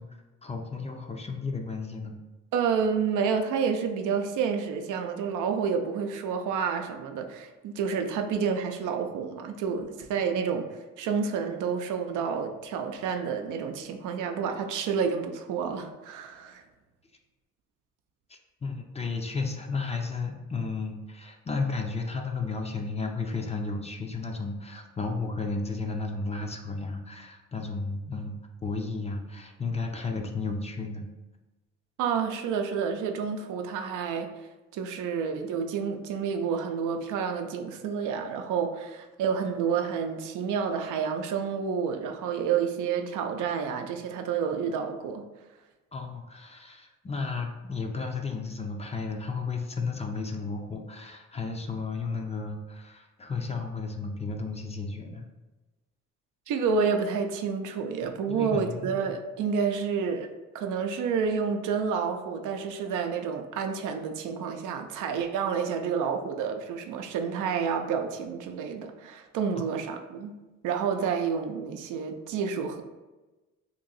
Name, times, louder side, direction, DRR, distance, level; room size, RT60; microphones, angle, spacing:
voice 1, 0.0-2.1 18.3-31.1 45.9-55.3 58.3-59.1 69.6-69.7, left 4 dB, 20° left, 3 dB, 0.5 m, -33 dB
voice 2, 2.5-10.7 11.0-16.6 32.0-34.3 34.7-45.2 56.5-60.3 60.5-70.3 70.6-72.8, right 6 dB, 85° right, 5 dB, 0.5 m, -29 dB
2.9 x 2.7 x 3.9 m, 1.1 s
cardioid pair, 90°, 30 cm